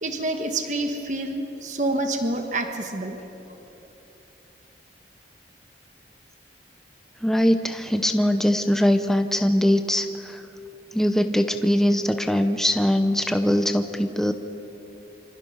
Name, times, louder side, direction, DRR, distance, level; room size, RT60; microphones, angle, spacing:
voice 1, 0.0-3.6, right 2 dB, 45° right, 5 dB, 1.4 m, -28 dB
voice 2, 7.2-10.4 10.9-14.3, equal, ahead, 7 dB, 0.7 m, -21 dB
27.0 x 25.0 x 5.6 m, 3.0 s
head